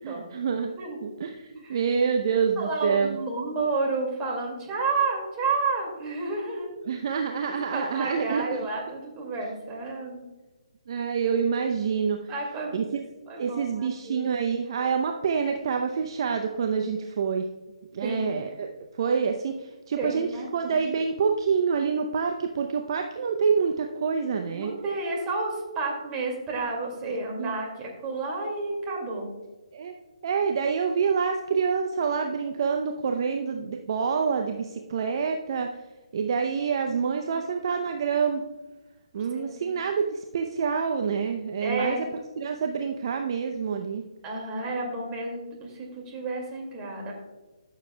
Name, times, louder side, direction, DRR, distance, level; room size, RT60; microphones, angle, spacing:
voice 1, 0.0-0.7 1.0-3.2 6.9-8.7 10.9-12.3 12.7-12.9 13.4-17.5 17.9-18.7 19.0-24.7 27.4-27.6 29.7-29.9 30.2-35.7 36.1-38.4 39.1-44.0, right 6 dB, 45° right, 4 dB, 0.6 m, -27 dB
voice 2, 2.6-6.7 7.5-10.2 12.3-12.8 13.3-14.3 18.0-18.5 20.0-20.8 24.5-29.3 37.3-37.4 39.3-39.7 41.6-42.1 44.2-47.1, right 3 dB, 20° right, -1 dB, 2.2 m, -31 dB
13.5 x 6.9 x 2.2 m, 1.1 s
figure-of-eight pair, 145°, 3 cm